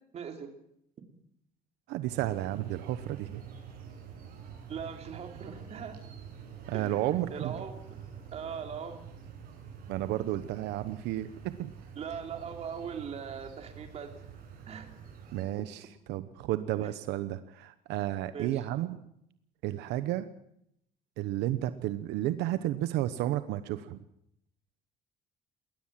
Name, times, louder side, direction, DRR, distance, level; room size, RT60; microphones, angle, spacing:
voice 1, 0.1-0.5 4.7-5.9 6.7-7.0 7.3-7.8 8.3-9.0 11.9-14.1 14.7-14.9 18.3-18.6, right 7 dB, 40° right, 5 dB, 3.1 m, -40 dB
voice 2, 1.9-3.4 6.7-7.6 9.9-11.7 15.3-19.0 19.6-20.3 21.2-24.0, right 14 dB, 85° right, 12 dB, 1.0 m, -32 dB
sound 1, 2.1-15.4, right 7 dB, 60° right, 7.9 m, -47 dB
21.0 x 19.0 x 7.5 m, 0.74 s
cardioid pair, 150°, 17 cm